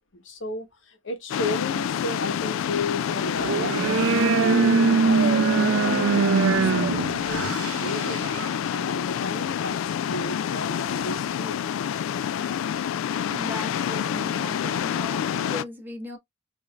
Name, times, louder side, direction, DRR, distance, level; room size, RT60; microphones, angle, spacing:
voice 1, 0.1-4.2 4.6-8.2 8.7-11.6, left 2 dB, 70° left, 1.1 m, -34 dB
sound 1, 1.3-15.6, left 9 dB, 90° left, 0.3 m, -28 dB
sound 2, 3.3-8.6, right 5 dB, 80° right, 0.4 m, -22 dB
voice 2, 13.3-16.2, equal, 10° right, 1.2 m, -37 dB
4.7 x 2.7 x 2.3 m
head